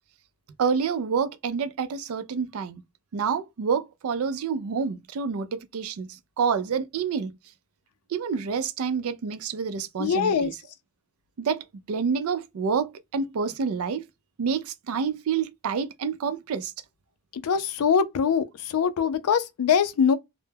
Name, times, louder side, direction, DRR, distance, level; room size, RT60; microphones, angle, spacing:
voice 1, 0.6-2.8 3.1-7.3 8.1-10.6 11.4-14.1 14.4-16.7, right 6 dB, 70° right, 0.4 m, -28 dB
voice 2, 10.0-10.5 17.4-20.2, left 7 dB, 75° left, 0.4 m, -23 dB
2.2 x 2.0 x 3.2 m
head